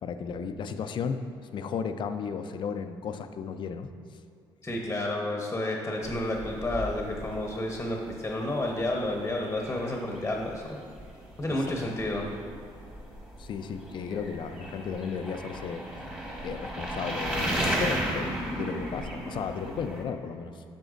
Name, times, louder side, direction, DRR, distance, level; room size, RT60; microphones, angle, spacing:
voice 1, 0.0-1.2 1.5-3.9 11.5-11.8 13.4-15.8 16.4-20.6, left 6 dB, 55° left, 9 dB, 0.4 m, -34 dB
voice 2, 4.6-10.8 11.4-12.3, left 1 dB, 20° left, 0 dB, 0.9 m, -31 dB
sound 1, 6.0-20.0, right 1 dB, 10° right, 1.5 m, -35 dB
7.9 x 6.8 x 2.5 m, 2.2 s
cardioid pair, 80°, 10 cm